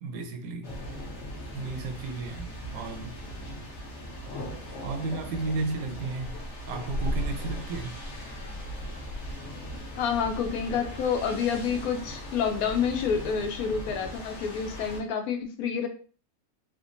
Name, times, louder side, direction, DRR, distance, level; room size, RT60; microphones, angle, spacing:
voice 1, 0.0-0.7 1.5-3.2 4.4-6.4 6.7-8.0, right 3 dB, 85° right, 1.1 m, -34 dB
sound 1, 0.6-15.0, equal, 55° left, 1.1 m, -38 dB
voice 2, 10.0-15.9, left 6 dB, 85° left, 1.1 m, -28 dB
3.5 x 2.1 x 2.5 m
omnidirectional pair, 1.5 m